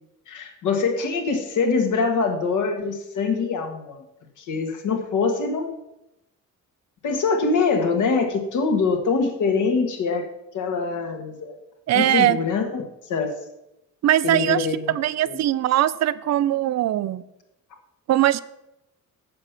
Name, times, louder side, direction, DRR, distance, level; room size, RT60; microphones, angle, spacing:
voice 1, 0.3-4.0 4.4-5.7 7.0-10.2 10.5-11.5 11.9-12.8 13.1-13.3 14.2-14.7 15.2-15.4, left 4 dB, 80° left, 5 dB, 1.5 m, -23 dB
voice 2, 11.9-12.4 14.0-17.2 18.1-18.4, right 13 dB, 60° right, 16 dB, 0.4 m, -21 dB
7.5 x 7.0 x 5.8 m, 0.88 s
wide cardioid pair, 165°, 30 cm